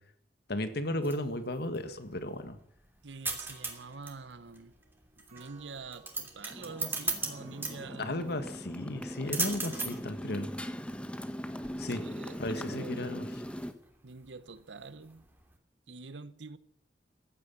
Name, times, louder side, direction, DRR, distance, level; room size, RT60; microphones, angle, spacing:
voice 1, 0.5-2.6 8.0-10.5 11.8-12.0 12.4-13.3, left 1 dB, 65° left, 1.8 m, -34 dB
sound 1, 0.8-15.6, right 3 dB, 10° right, 2.9 m, -40 dB
voice 2, 3.0-4.7 5.2-8.2 11.9-13.2 14.0-15.2 15.9-16.6, right 4 dB, 85° right, 1.0 m, -46 dB
sound 2, 3.4-11.0, right 2 dB, 40° right, 4.0 m, -60 dB
Motorcycle, 6.5-13.7, equal, 5° left, 1.2 m, -40 dB
15.5 x 9.9 x 9.0 m
head